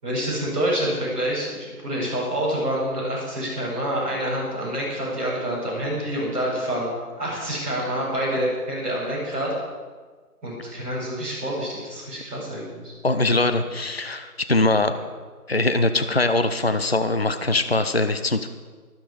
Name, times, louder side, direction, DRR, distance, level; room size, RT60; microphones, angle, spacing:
voice 1, 0.0-6.9 7.2-9.5 10.4-12.9, right 1 dB, 10° right, -14 dB, 5.0 m, -27 dB
voice 2, 13.0-14.9 15.5-18.5, left 2 dB, 40° left, 9 dB, 0.6 m, -22 dB
13.5 x 13.0 x 4.9 m, 1.5 s
figure-of-eight pair, 170°, 46 cm